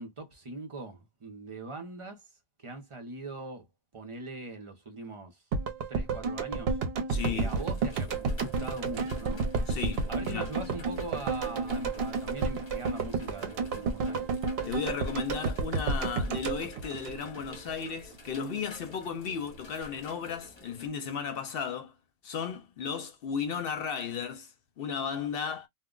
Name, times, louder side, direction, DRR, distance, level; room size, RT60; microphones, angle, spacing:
voice 1, 0.0-2.2 2.6-3.7 3.9-5.4 5.9-6.8 7.3-9.4 10.1-14.3, right 2 dB, 35° right, 0.6 m, -41 dB
sound 1, 5.5-17.7 18.0-18.1, right 4 dB, 70° right, 0.8 m, -31 dB
voice 2, 7.1-7.6 9.7-10.5 14.7-21.9 22.2-25.7, left 6 dB, 65° left, 0.7 m, -35 dB
sound 2, 7.1-20.9, left 1 dB, 30° left, 0.7 m, -50 dB
2.1 x 2.1 x 3.7 m
omnidirectional pair, 1.1 m